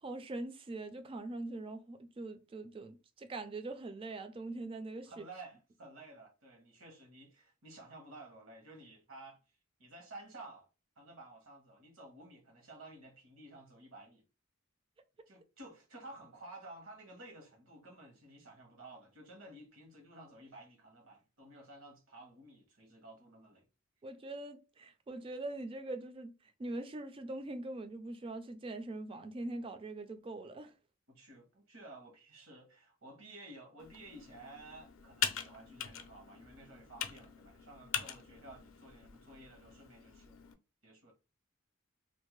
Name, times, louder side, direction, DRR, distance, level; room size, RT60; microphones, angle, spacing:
voice 1, 0.0-5.3 24.0-30.7, right 2 dB, 25° right, 0.3 m, -42 dB
voice 2, 5.1-9.4 9.8-10.7 11.0-14.2 15.3-23.7 31.1-40.5 40.8-41.1, right 2 dB, 75° right, 1.1 m, -53 dB
Computer keyboard, 33.8-40.5, left 9 dB, 65° left, 0.4 m, -42 dB
2.6 x 2.1 x 3.0 m
head